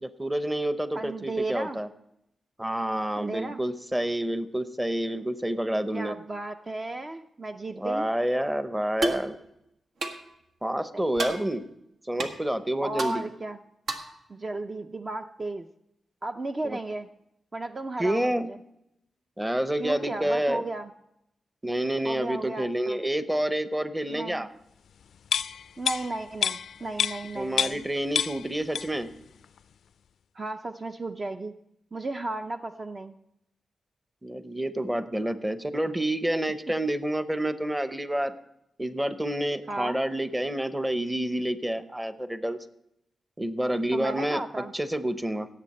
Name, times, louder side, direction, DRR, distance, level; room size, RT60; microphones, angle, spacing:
voice 1, 0.0-1.9 2.6-6.2 7.7-9.4 10.6-11.6 12.1-13.2 16.6-16.8 18.0-18.5 19.4-20.6 21.6-24.5 27.4-29.1 34.2-38.3 38.8-42.6 43.4-44.4 44.7-45.5, right 1 dB, 10° right, 12 dB, 0.8 m, -28 dB
voice 2, 0.9-1.8 3.2-3.6 5.9-8.1 10.9-11.3 12.8-13.6 14.3-15.7 16.2-17.1 17.5-18.6 19.8-20.9 22.0-23.0 24.1-24.5 25.8-27.9 30.3-31.5 31.9-33.1 39.7-40.0 43.9-44.7, right 2 dB, 35° right, 6 dB, 0.5 m, -34 dB
sound 1, 9.0-9.3 10.0-10.2 11.2-11.4 12.2-12.3 13.0-13.1 13.9-14.1, right 2 dB, 80° right, 1.4 m, -29 dB
sound 2, 25.3-27.9 28.2-29.1 29.4-29.6, left 7 dB, 85° left, 0.3 m, -29 dB
17.5 x 7.6 x 4.2 m, 0.82 s
cardioid pair, 95°, 0 cm